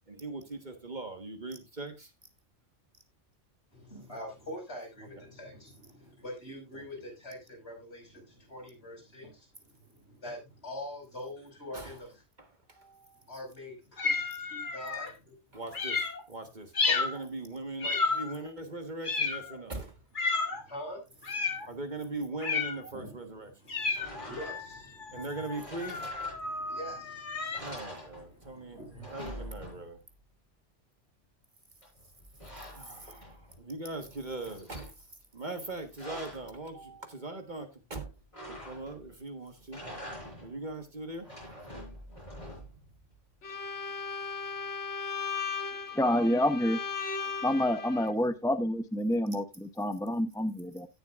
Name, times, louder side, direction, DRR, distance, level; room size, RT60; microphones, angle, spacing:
voice 1, 0.1-2.1 5.1-5.2 6.7-6.9 11.7-12.0 12.4-13.3 15.5-20.0 21.6-23.5 25.1-26.0 27.6-30.0 32.7-38.1 38.5-39.8 40.4-41.3 42.6-42.7, right 2 dB, 40° right, 1.6 m, -40 dB
voice 2, 3.7-12.1 13.3-15.6 16.9-17.0 17.8-18.2 20.4-21.7 22.9-23.2 23.6-25.3 26.4-27.6 28.3-29.4, left 1 dB, 60° left, 5.8 m, -45 dB
sound 1, 14.0-15.1 15.7-16.2 16.7-17.2 17.8-18.5 19.0-19.6 20.2-20.6 21.2-21.7 22.4-22.9 23.7-27.6, left 4 dB, 45° left, 1.4 m, -32 dB
sound 2, 23.9-24.8 25.5-26.8 27.1-27.2 27.5-28.6 28.8-30.1 31.8-33.6 34.0-34.9 35.6-36.5 38.3-39.1 39.6-40.6 41.1-42.9, equal, 25° left, 6.2 m, -45 dB
Bowed string instrument, 43.4-48.1, left 5 dB, 80° left, 1.5 m, -37 dB
voice 3, 46.0-46.8 47.4-50.9, left 1 dB, 5° left, 0.5 m, -28 dB
17.0 x 6.8 x 2.5 m
omnidirectional pair, 1.2 m